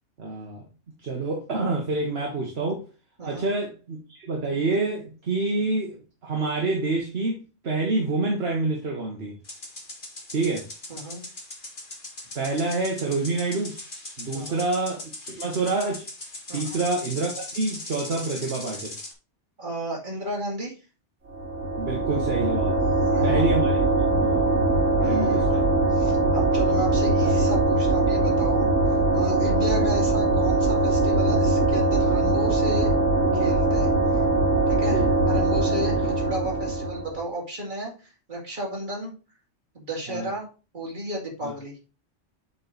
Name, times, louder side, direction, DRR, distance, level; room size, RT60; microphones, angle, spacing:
voice 1, 0.2-0.6 1.0-2.8 3.2-9.4 10.3-10.7 12.3-13.7 14.2-16.1 16.5-18.9 21.8-22.8 23.2-24.5 25.0-25.6 29.8-29.9 34.9-35.1 40.1-40.3 41.4-41.5, right 3 dB, 60° right, 0 dB, 1.5 m, -27 dB
voice 2, 3.2-3.5 10.9-11.2 14.3-14.6 16.5-16.8 19.6-20.7 22.8-23.4 25.0-32.9 33.3-34.2 34.7-39.1 39.7-40.5 40.7-41.8, equal, 40° right, -3 dB, 2.6 m, -34 dB
sound 1, 9.4-19.1, left 2 dB, 45° left, 2.0 m, -39 dB
sound 2, 21.3-37.2, right 2 dB, 75° right, 1.9 m, -22 dB
7.6 x 4.5 x 4.0 m, 0.33 s
omnidirectional pair, 1.2 m